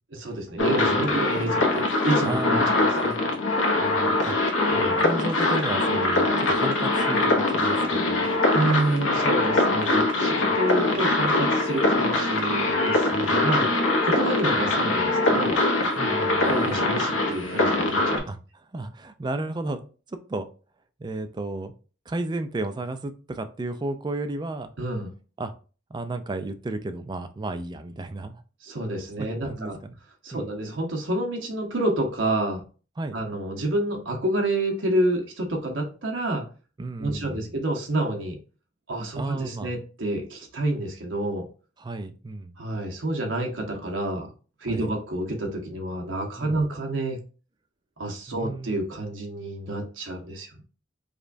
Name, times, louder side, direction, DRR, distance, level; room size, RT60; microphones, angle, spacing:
voice 1, 0.1-3.1 4.6-5.0 8.5-13.7 14.0-15.6 16.4-18.3 24.8-25.1 28.6-29.8 30.2-32.6 33.1-36.5 37.0-38.4 38.9-41.5 42.6-44.3 44.6-47.2 48.0-50.6, right 1 dB, 70° right, 2 dB, 0.9 m, -28 dB
sound 1, 0.6-18.2, left 2 dB, 85° left, 0.8 m, -23 dB
voice 2, 0.6-1.1 2.2-2.9 3.8-4.4 5.0-8.3 10.4-10.5 13.1-13.4 16.0-16.8 18.3-18.4 18.7-19.8 20.3-20.5 21.0-21.7 22.1-24.7 25.4-25.5 25.9-28.4 29.2-30.0 30.3-30.5 33.0-33.2 36.8-37.5 39.2-39.7 41.8-42.5 44.7-44.9 46.4-46.6 48.3-48.7, right 2 dB, 20° right, 8 dB, 0.3 m, -33 dB
5.0 x 2.2 x 2.5 m, 0.36 s
head